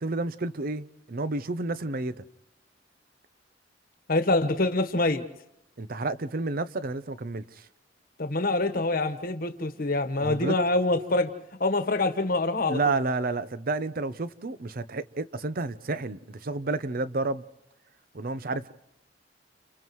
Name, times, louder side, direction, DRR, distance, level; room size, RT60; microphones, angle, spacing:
voice 1, 0.0-2.1 5.8-7.4 10.2-10.6 12.7-17.4 18.1-18.7, right 3 dB, 55° right, 0.7 m, -30 dB
voice 2, 4.1-5.2 8.2-11.3 11.6-13.0, left 2 dB, 55° left, 1.3 m, -25 dB
30.0 x 30.0 x 3.2 m
head